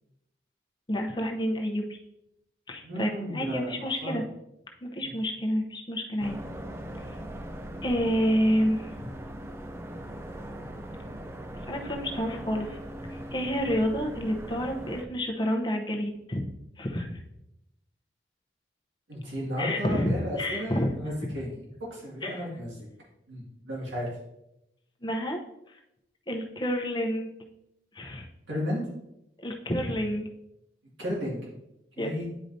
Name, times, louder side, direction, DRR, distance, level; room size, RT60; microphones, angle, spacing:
voice 1, 0.9-1.8 2.7-4.2 4.8-6.4 7.8-8.9 11.7-12.8 13.3-16.4 16.8-17.2 19.6-20.9 22.2-22.4 25.0-25.4 26.3-27.3 27.9-28.3 29.4-30.2 32.0-32.1, equal, 25° left, 2 dB, 0.8 m, -29 dB
voice 2, 2.8-4.2 5.0-5.1 19.1-21.6 21.9-22.9 23.3-24.1 28.5-28.9 31.0-31.5 32.0-32.3, equal, 85° right, -5 dB, 2.1 m, -33 dB
sound 1, 6.2-15.0, right 1 dB, 15° right, 0.4 m, -40 dB
10.0 x 4.8 x 2.7 m, 0.85 s
head